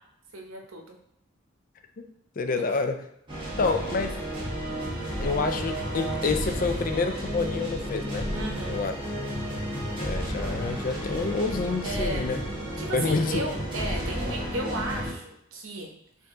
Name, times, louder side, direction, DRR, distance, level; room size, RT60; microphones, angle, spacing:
voice 1, 0.3-1.0 2.7-2.8 8.3-8.8 11.8-12.3 12.8-15.9, right 2 dB, 85° right, 1 dB, 0.9 m, -34 dB
voice 2, 2.4-3.0 3.6-4.2 5.2-8.3 8.7-8.9 10.0-12.4 12.9-13.4, left 4 dB, 40° left, 7 dB, 0.4 m, -28 dB
sound 1, 3.3-15.1, equal, 25° right, 1.2 m, -32 dB
4.5 x 2.7 x 3.6 m, 0.76 s
head